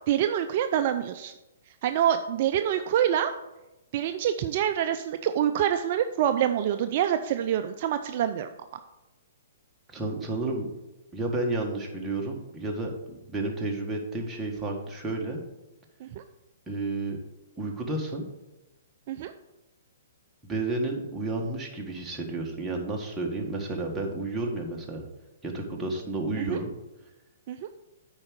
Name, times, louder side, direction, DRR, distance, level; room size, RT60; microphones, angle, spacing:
voice 1, 0.1-1.3 1.8-3.3 3.9-8.5 16.0-16.2 19.1-19.3 26.3-26.6 27.5-27.7, right 10 dB, 45° right, 8 dB, 0.4 m, -26 dB
voice 2, 9.9-10.7 11.1-15.4 16.7-17.2 17.6-18.3 20.4-25.0 25.4-26.7, right 2 dB, 10° right, -2 dB, 1.7 m, -31 dB
8.6 x 4.8 x 6.4 m, 0.99 s
hypercardioid pair, 130°, 0 cm